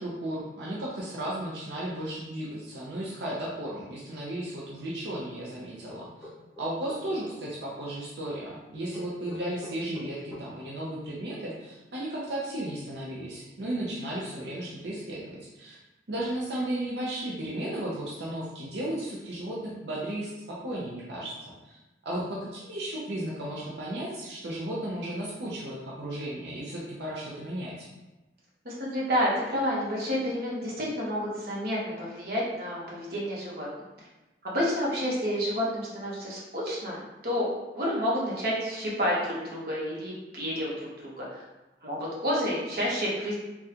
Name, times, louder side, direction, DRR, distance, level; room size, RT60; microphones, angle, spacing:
voice 1, 0.0-6.3 6.6-15.8 16.1-21.8 22.0-27.9, right 1 dB, 75° right, -5 dB, 0.6 m, -34 dB
sound 1, 5.9-7.3 8.9-10.5, left 1 dB, 10° right, 1.3 m, -45 dB
voice 2, 28.6-33.7 34.4-37.5 37.7-40.9 41.2-41.4 41.8-43.4, equal, 55° right, -5 dB, 0.9 m, -29 dB
3.5 x 2.3 x 2.8 m, 1.0 s
head